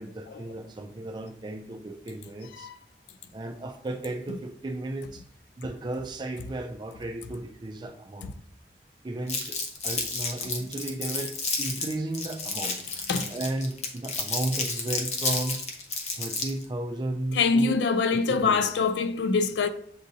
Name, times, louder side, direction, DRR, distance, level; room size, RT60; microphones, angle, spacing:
voice 1, 0.0-2.7 3.3-5.2 5.6-8.3 9.0-15.6 16.1-17.8 18.3-18.7, right 1 dB, 25° right, 0.3 m, -34 dB
Crumpling crinkling, 9.3-16.7, left 4 dB, 40° left, 0.6 m, -31 dB
voice 2, 17.3-19.7, left 4 dB, 80° left, 0.3 m, -24 dB
7.0 x 2.6 x 2.7 m
head